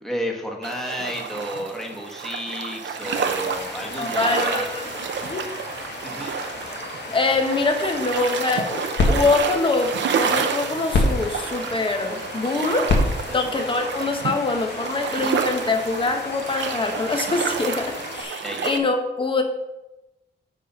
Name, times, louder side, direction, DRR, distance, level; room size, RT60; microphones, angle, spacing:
voice 1, 0.0-4.7 6.0-6.4 13.3-13.5 18.4-18.6, equal, ahead, 0 dB, 1.3 m, -31 dB
sound 1, 0.6-18.8, right 6 dB, 85° right, 0.7 m, -30 dB
sound 2, 3.0-18.2, left 2 dB, 70° left, 2.2 m, -36 dB
voice 2, 4.0-4.8 5.2-5.4 7.1-13.0 13.3-19.4, left 3 dB, 30° left, 4 dB, 1.0 m, -24 dB
sound 3, 8.4-14.8, left 2 dB, 90° left, 1.7 m, -27 dB
10.0 x 4.2 x 5.4 m, 0.98 s
wide cardioid pair, 160°, 18 cm